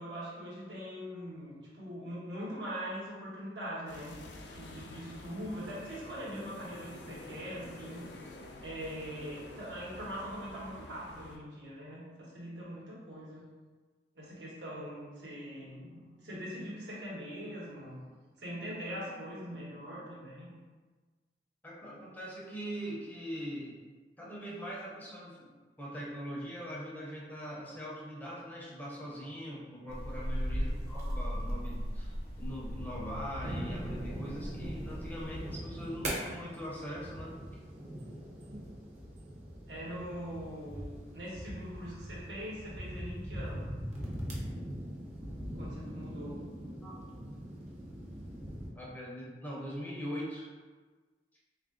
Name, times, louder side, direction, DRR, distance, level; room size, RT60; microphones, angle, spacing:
voice 1, 0.0-4.2 4.5-8.1 8.6-13.5 14.1-18.0 18.4-20.5 30.5-30.9 39.7-44.1 45.5-46.4, equal, 80° right, -6 dB, 1.1 m, -42 dB
sound 1, 3.9-11.4, left 2 dB, 80° left, 0.5 m, -49 dB
voice 2, 21.6-23.8 24.2-25.5 25.8-37.3 46.8-47.0 48.8-50.5, equal, 10° left, -5 dB, 0.6 m, -41 dB
sound 2, 29.9-35.6, equal, 55° left, 0.9 m, -37 dB
sound 3, 33.4-48.7, equal, 40° right, 0.7 m, -41 dB
3.2 x 2.5 x 3.6 m, 1.4 s
head